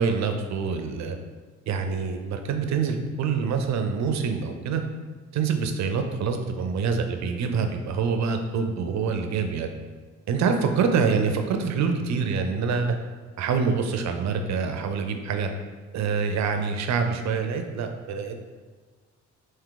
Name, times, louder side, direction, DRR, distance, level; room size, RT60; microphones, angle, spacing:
voice 1, 0.0-1.2 1.7-4.8 5.3-9.7 10.3-13.0 13.4-15.5 15.9-18.4, right 5 dB, 65° right, 6 dB, 0.5 m, -26 dB
3.6 x 2.6 x 3.8 m, 1.4 s
cardioid pair, 90°, 30 cm